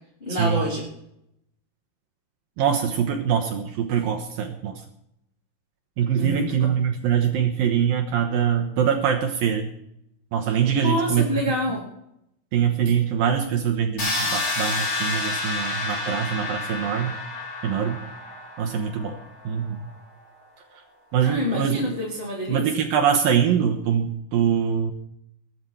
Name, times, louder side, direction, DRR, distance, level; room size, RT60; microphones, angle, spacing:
voice 1, 0.2-0.8 6.2-6.7 10.5-11.8 21.2-22.6, left 1 dB, 15° left, -4 dB, 2.9 m, -27 dB
voice 2, 2.6-4.8 6.0-9.7 10.3-11.3 12.5-17.2 17.6-18.0 18.6-19.2 19.4-19.8 21.1-21.8 22.5-24.9, right 8 dB, 70° right, 2 dB, 2.2 m, -23 dB
sound 1, 14.0-19.8, left 3 dB, 35° left, 4.2 m, -29 dB
21.5 x 9.5 x 4.3 m, 0.78 s
omnidirectional pair, 5.6 m